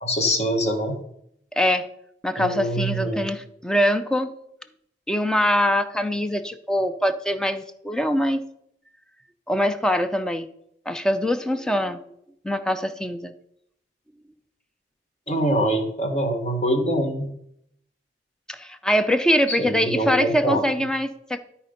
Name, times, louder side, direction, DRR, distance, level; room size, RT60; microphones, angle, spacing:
voice 1, 0.0-1.0 2.4-3.3 15.3-17.3 19.5-20.6, equal, 35° left, 4 dB, 1.4 m, -24 dB
voice 2, 1.6-1.9 2.2-4.3 5.1-8.4 9.5-10.5 10.9-12.0 12.4-13.3 18.5-21.4, equal, 5° left, 10 dB, 0.5 m, -23 dB
12.5 x 4.3 x 5.2 m, 0.74 s
head